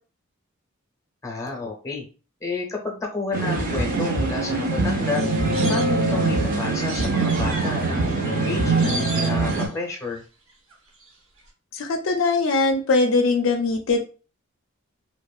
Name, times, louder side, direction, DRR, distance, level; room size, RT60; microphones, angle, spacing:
voice 1, 1.2-2.0 2.4-5.3 5.7-10.2, left 3 dB, 15° left, 0 dB, 0.6 m, -30 dB
sound 1, 3.3-9.7, right 3 dB, 40° right, 0.5 m, -23 dB
sound 2, 4.7-6.4 6.9-10.2 10.5-11.1 11.4-11.5, right 2 dB, 70° right, 0.8 m, -37 dB
voice 2, 11.7-14.0, left 3 dB, 65° left, 4 dB, 0.4 m, -21 dB
2.9 x 2.2 x 2.3 m, 0.36 s
head